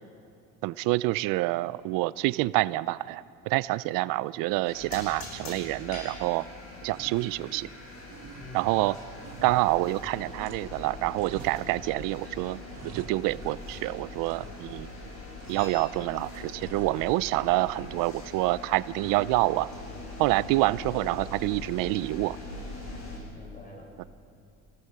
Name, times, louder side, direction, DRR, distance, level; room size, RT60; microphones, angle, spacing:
voice 1, 0.6-6.4 6.8-7.7 8.5-8.9 9.4-12.6 12.9-14.9 15.5-19.7 20.2-22.4 24.0-24.1, right 19 dB, 90° right, 18 dB, 0.5 m, -27 dB
sound 1, 4.6-23.2, left 2 dB, 55° left, 6.8 m, -42 dB
sound 2, 6.0-6.5 6.9-7.8 8.1-10.8 11.1-12.1 12.4-13.8 14.2-14.9 15.4-16.0 16.4-17.4 17.7-18.5 19.0-19.4 20.9-21.4, right 7 dB, 55° right, 1.5 m, -49 dB
voice 2, 8.4-8.8 9.4-9.5 23.3-24.1, left 1 dB, 25° left, 0 dB, 6.1 m, -47 dB
28.0 x 17.5 x 6.8 m, 2.5 s
cardioid pair, 135°, 32 cm